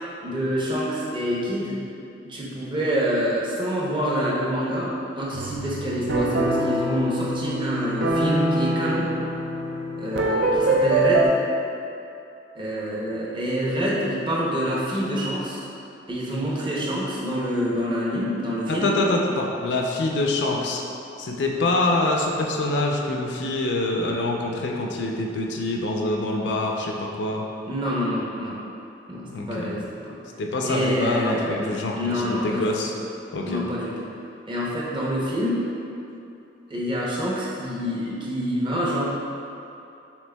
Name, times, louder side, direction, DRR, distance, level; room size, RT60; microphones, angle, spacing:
voice 1, 0.2-1.8 2.3-9.1 10.0-11.3 12.5-15.6 16.1-18.9 27.7-28.6 29.1-30.2 30.6-32.9 33.4-34.1 34.5-35.7 36.7-39.0, equal, 25° right, -6 dB, 0.7 m, -27 dB
sound 1, 5.3-11.3, right 1 dB, 70° right, 0.4 m, -24 dB
voice 2, 18.7-20.8 21.2-27.4 29.3-29.8 30.4-32.9 33.3-33.6, left 2 dB, 65° left, 0 dB, 0.4 m, -25 dB
6.0 x 3.4 x 2.2 m, 2.8 s
head